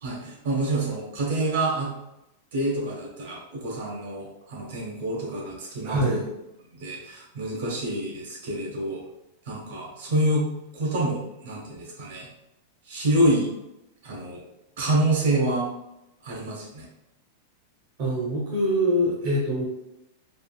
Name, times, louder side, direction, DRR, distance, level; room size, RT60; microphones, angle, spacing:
voice 1, 0.0-1.9 2.5-6.2 6.7-9.0 9.5-10.5 10.7-12.3 12.9-13.5 14.0-14.4 14.8-15.7 16.2-16.9, right 1 dB, 75° right, -3 dB, 1.2 m, -27 dB
voice 2, 5.8-6.3 18.0-19.7, equal, 50° right, -5 dB, 0.9 m, -24 dB
3.6 x 2.4 x 2.3 m, 0.88 s
supercardioid pair, 150°, 0 cm